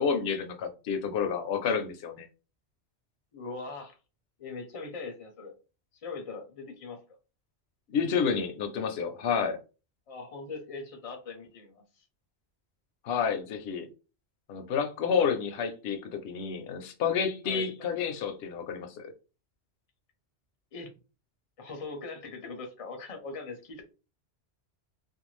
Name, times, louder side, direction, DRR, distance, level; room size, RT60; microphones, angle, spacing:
voice 1, 0.0-2.3 7.9-9.6 13.0-13.9 14.5-19.1, left 6 dB, 70° left, 0.8 m, -29 dB
voice 2, 3.3-4.0 4.4-5.5 5.9-7.0 10.1-12.0 15.2-15.3 17.4-17.9 20.7-20.9 21.6-23.9, left 4 dB, 40° left, 0.6 m, -41 dB
2.5 x 2.2 x 3.0 m
omnidirectional pair, 1.1 m